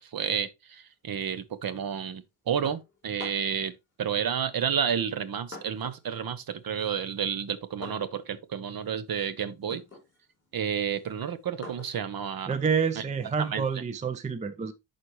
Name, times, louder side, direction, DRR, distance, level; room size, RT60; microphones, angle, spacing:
voice 1, 0.1-3.7 4.0-9.8 10.5-12.5 13.0-13.1 13.4-13.6, right 8 dB, 45° right, 0.9 m, -31 dB
sound 1, 2.6-3.7 4.6-6.1 6.4-13.7, left 2 dB, 20° left, 3.9 m, -48 dB
voice 2, 12.5-14.7, right 6 dB, 15° right, 0.4 m, -28 dB
11.0 x 4.2 x 3.2 m
wide cardioid pair, 155°, 49 cm